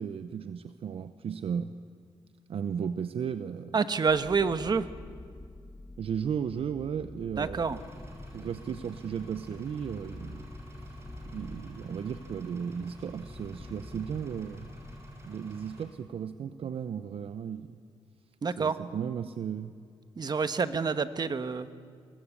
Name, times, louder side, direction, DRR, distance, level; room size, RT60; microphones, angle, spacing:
voice 1, 0.0-1.7 2.5-3.8 6.0-7.7 8.3-10.5 11.3-14.7 15.2-17.8 18.6-19.7, right 7 dB, 65° right, 11 dB, 0.7 m, -35 dB
voice 2, 3.7-4.9 7.4-7.8 18.4-18.8 20.2-21.7, right 5 dB, 40° right, 11 dB, 1.2 m, -28 dB
sound 1, 4.1-15.8, left 2 dB, 20° left, 1.3 m, -48 dB
Engine, 7.7-15.8, equal, 25° right, 5.4 m, -48 dB
23.5 x 19.5 x 8.5 m, 2.2 s
cardioid pair, 85°, 10 cm